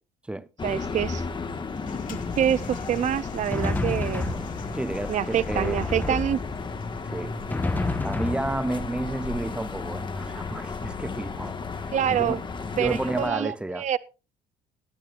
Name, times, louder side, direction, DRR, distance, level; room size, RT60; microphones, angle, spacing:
sound 1, 0.6-13.3, left 4 dB, 30° left, 1.6 m, -34 dB
voice 1, 0.6-1.2 2.1-4.3 5.1-6.4 11.9-12.4 12.8-14.0, right 10 dB, 45° right, 0.5 m, -26 dB
Toilet flush, 1.4-8.4, left 7 dB, 50° left, 2.6 m, -48 dB
Drum, 3.1-4.9 5.5-6.8 7.5-9.0, left 2 dB, 10° left, 1.3 m, -30 dB
voice 2, 4.7-5.8 6.1-6.2 7.0-7.4 8.0-12.4 12.8-13.9, right 1 dB, 5° right, 0.7 m, -31 dB
19.0 x 10.5 x 2.5 m
cardioid pair, 110°, 17 cm